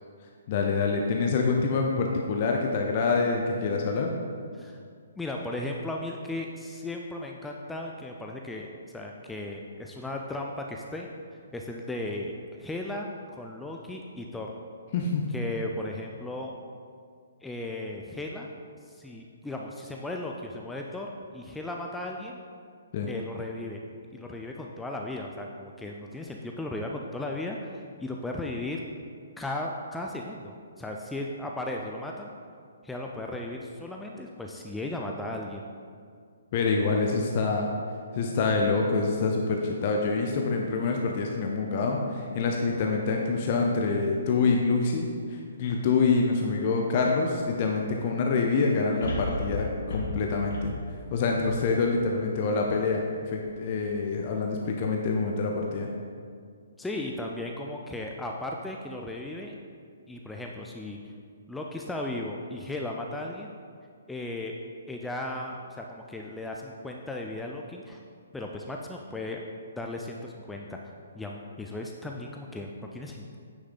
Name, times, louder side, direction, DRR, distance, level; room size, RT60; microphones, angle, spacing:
voice 1, 0.5-4.1 14.9-15.3 22.9-23.1 36.5-37.7 38.1-50.7 51.1-55.9, left 4 dB, 40° left, 1 dB, 0.7 m, -26 dB
voice 2, 5.2-8.7 8.9-11.1 11.5-14.5 15.3-16.5 17.4-18.5 18.9-22.4 23.1-23.8 24.1-28.8 29.4-32.3 32.8-35.6 56.8-59.5 60.1-61.0 61.5-63.5 64.1-64.6 64.9-68.0 68.3-69.4 69.8-70.8 71.1-73.4, left 2 dB, 5° left, 0 dB, 0.5 m, -36 dB
sound 1, 49.0-52.3 52.8-52.9, left 2 dB, 60° left, 1.7 m, -35 dB
9.2 x 6.3 x 4.0 m, 2.2 s
figure-of-eight pair, 130°, 0 cm